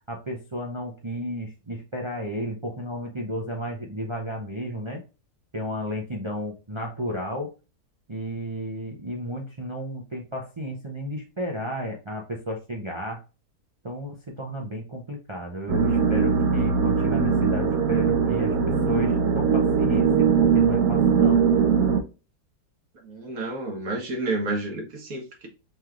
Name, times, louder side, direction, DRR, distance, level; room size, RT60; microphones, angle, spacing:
voice 1, 0.1-5.0 5.5-7.5 8.1-13.2 13.8-21.4, equal, 35° right, 0.5 m, -33 dB
sound 1, 15.7-22.0, right 6 dB, 90° right, 1.3 m, -21 dB
voice 2, 23.0-25.5, right 2 dB, 65° right, 1.6 m, -30 dB
5.3 x 3.1 x 2.4 m
omnidirectional pair, 1.6 m